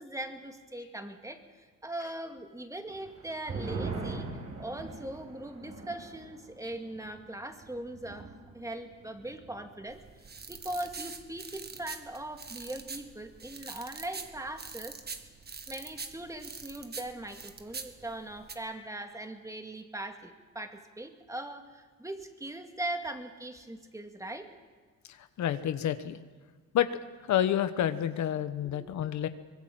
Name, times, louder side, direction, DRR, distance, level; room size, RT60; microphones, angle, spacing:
voice 1, 0.0-10.0 10.5-15.0 15.7-24.5 28.6-28.9, right 1 dB, 10° right, 5 dB, 2.4 m, -40 dB
sound 1, 2.9-9.8 10.1-10.2 10.6-11.1, right 3 dB, 55° right, 7.3 m, -42 dB
sound 2, 9.9-18.5, right 4 dB, 35° right, 1.8 m, -44 dB
voice 2, 25.1-26.2 26.7-27.0 27.3-29.3, left 10 dB, 70° left, 11 dB, 1.2 m, -29 dB
24.0 x 20.5 x 7.8 m, 1.4 s
cardioid pair, 90°, 30 cm